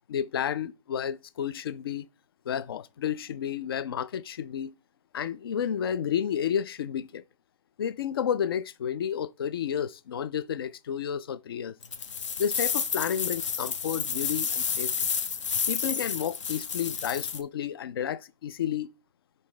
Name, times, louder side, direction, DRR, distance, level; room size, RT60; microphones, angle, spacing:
voice 1, 0.1-2.1 2.5-4.7 5.1-7.2 7.8-11.7 12.4-15.1 15.7-18.9, left 8 dB, 45° left, 0.4 m, -31 dB
sound 1, 11.8-17.4, left 6 dB, 60° left, 0.8 m, -30 dB
5.8 x 5.2 x 3.1 m
hypercardioid pair, 155°, 17 cm